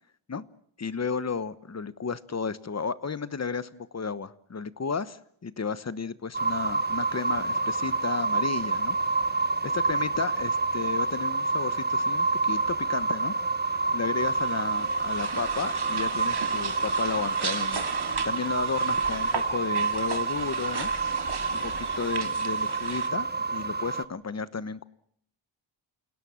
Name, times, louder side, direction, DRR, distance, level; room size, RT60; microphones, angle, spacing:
voice 1, 0.8-9.0 9.3-13.3 13.6-17.8 18.2-20.9 21.5-24.8, left 5 dB, 35° left, 16 dB, 1.1 m, -33 dB
sound 1, 6.3-24.0, right 3 dB, 20° right, 1.1 m, -28 dB
sound 2, 14.2-23.1, right 6 dB, 55° right, 2.5 m, -37 dB
28.5 x 18.0 x 7.4 m, 0.66 s
wide cardioid pair, 110°, 47 cm